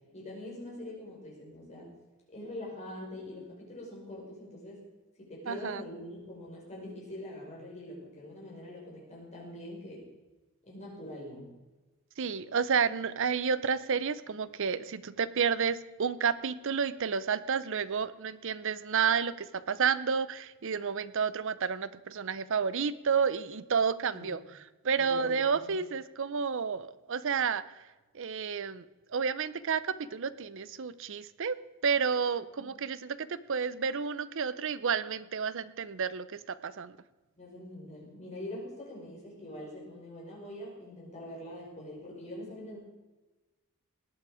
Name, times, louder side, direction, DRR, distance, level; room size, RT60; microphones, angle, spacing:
voice 1, 0.1-1.9 2.3-4.8 5.2-10.0 10.7-11.5 24.1-24.3 25.0-25.8 32.6-32.7 37.4-42.8, left 1 dB, 30° left, -4 dB, 5.3 m, -44 dB
voice 2, 5.5-5.8 12.2-24.4 24.8-27.6 28.1-28.8 29.1-29.8 30.1-31.6 31.8-36.9, right 6 dB, 60° right, 16 dB, 0.6 m, -30 dB
19.0 x 8.8 x 4.9 m, 1.2 s
head